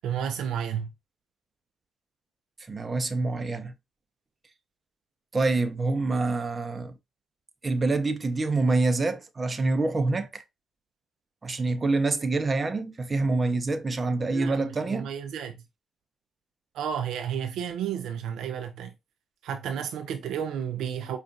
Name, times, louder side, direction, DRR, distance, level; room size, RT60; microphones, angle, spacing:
voice 1, 0.0-0.9 14.3-15.6 16.7-18.9 19.4-21.2, right 8 dB, 75° right, 0.4 m, -32 dB
voice 2, 2.7-3.7 5.3-6.9 7.6-10.4 11.4-15.1, right 3 dB, 35° right, 0.7 m, -26 dB
5.1 x 2.5 x 2.3 m
hypercardioid pair, 50°, 0 cm